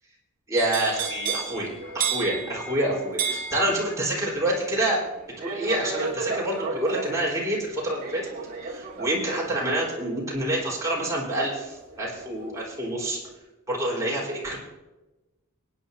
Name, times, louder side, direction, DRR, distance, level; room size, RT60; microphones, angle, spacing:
voice 1, 0.5-5.0 5.4-8.2 8.7-13.2 13.7-14.6, right 1 dB, 15° right, -4 dB, 4.2 m, -27 dB
sound 1, 0.6-12.5 12.9-13.3, right 5 dB, 40° right, 1.9 m, -34 dB
23.0 x 10.0 x 2.7 m, 1.1 s
head